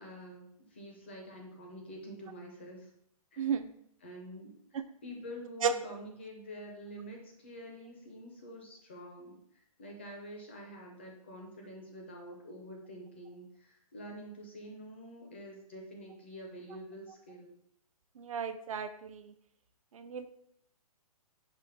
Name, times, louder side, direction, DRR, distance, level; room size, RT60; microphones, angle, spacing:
voice 1, 0.0-2.9 3.3-3.5 4.0-17.5, equal, 20° left, 1 dB, 0.4 m, -47 dB
voice 2, 3.4-3.7 5.6-5.7 18.2-19.3 19.9-20.3, right 6 dB, 60° right, 10 dB, 0.4 m, -33 dB
4.9 x 2.1 x 4.2 m, 0.70 s
hypercardioid pair, 175°, 20 cm